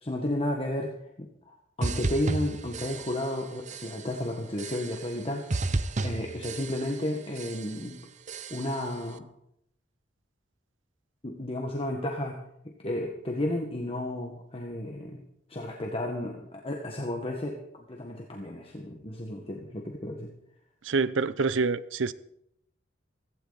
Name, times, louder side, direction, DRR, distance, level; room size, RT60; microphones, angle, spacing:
voice 1, 0.0-8.0 8.5-9.3 11.2-12.4 12.6-15.2 15.5-20.3, left 1 dB, 30° left, 1.7 m, -33 dB
sound 1, 1.8-3.4 3.7-4.2 4.6-5.2 5.5-7.1 7.3-7.9 8.3-8.9, right 3 dB, 40° right, 0.7 m, -33 dB
voice 2, 20.8-22.1, right 4 dB, 85° right, 0.7 m, -26 dB
16.5 x 15.5 x 4.2 m
head